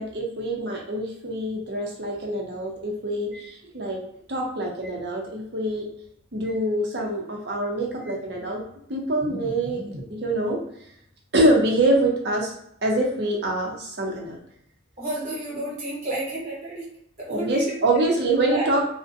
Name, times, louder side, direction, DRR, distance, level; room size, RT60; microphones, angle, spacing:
voice 1, 0.0-4.0 4.3-5.9 6.3-8.6 8.9-10.6 11.3-12.5 12.8-14.4 17.3-18.9, right 1 dB, 55° right, 0 dB, 0.6 m, -25 dB
voice 2, 15.0-16.9 17.2-17.8 18.5-18.7, right 1 dB, 35° right, -6 dB, 1.0 m, -31 dB
2.5 x 2.1 x 2.5 m, 0.72 s
head